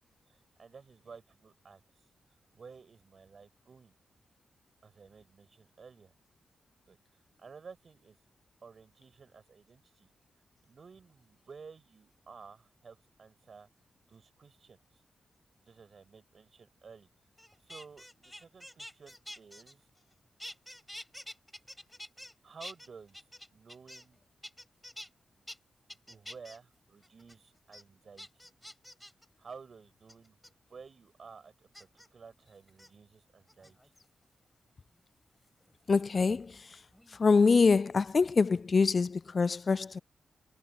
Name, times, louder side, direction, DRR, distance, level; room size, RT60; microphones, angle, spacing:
voice 1, 0.3-1.8 2.5-4.0 4.8-6.1 6.8-8.2 8.6-10.1 10.7-13.7 14.1-15.0 15.7-17.1 17.6-19.8 22.4-23.2 23.5-24.2 26.1-28.5 29.4-30.3 30.7-33.8, right 5 dB, 55° right, 7.6 m, -53 dB
sound 1, 17.4-20.1 20.4-22.3 22.6-24.1 24.4-25.1 25.5-25.6 25.9-26.6 27.0-27.3 27.7-27.8 28.2-29.2 30.1-30.5 31.7-32.1 32.7-32.9 33.5-34.0 35.5-36.7 36.9-37.3, left 1 dB, 5° left, 6.5 m, -48 dB
voice 2, 35.9-36.8 37.1-40.0, left 4 dB, 45° left, 0.4 m, -25 dB
cardioid pair, 75°, 0 cm